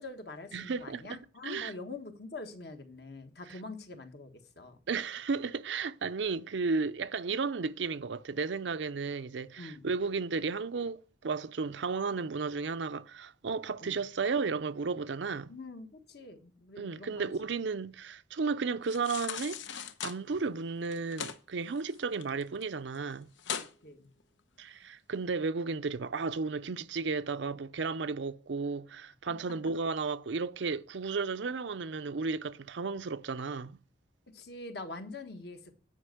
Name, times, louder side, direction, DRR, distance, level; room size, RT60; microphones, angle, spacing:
voice 1, 0.0-4.8 9.6-9.9 13.8-14.0 15.5-17.3 23.8-24.1 34.3-35.7, left 3 dB, 60° left, 1.4 m, -45 dB
voice 2, 0.5-1.7 4.9-15.5 16.8-19.6 20.0-23.3 24.6-33.8, right 4 dB, 80° right, 0.5 m, -34 dB
sound 1, 18.8-20.2 20.9-21.4 21.8-22.6 22.9-23.0 23.4-23.7 24.2-24.3, left 8 dB, 90° left, 0.9 m, -38 dB
10.0 x 5.3 x 7.7 m
head